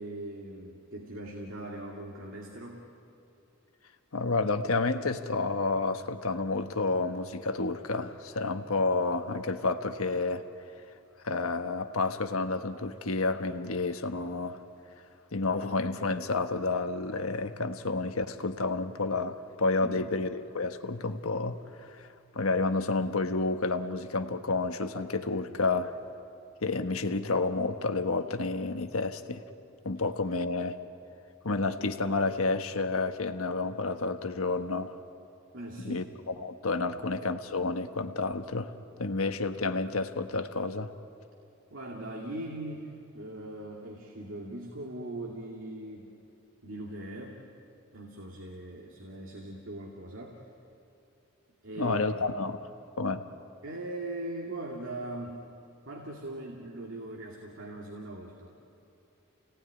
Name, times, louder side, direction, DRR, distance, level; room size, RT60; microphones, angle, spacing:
voice 1, 0.0-2.9 19.8-20.0 35.5-36.1 36.9-37.0 41.7-46.1 46.6-47.4 47.9-50.4 51.6-52.0 52.3-52.4 53.6-55.5 55.9-58.5, right 1 dB, 65° right, -1 dB, 2.4 m, -40 dB
voice 2, 4.1-10.4 11.2-14.6 15.3-22.1 22.3-25.9 26.6-29.4 29.8-30.8 31.4-34.9 35.8-38.7 39.0-40.9 51.8-52.6 53.0-53.2, left 3 dB, 90° left, 8 dB, 1.3 m, -30 dB
28.5 x 18.5 x 9.8 m, 2.7 s
head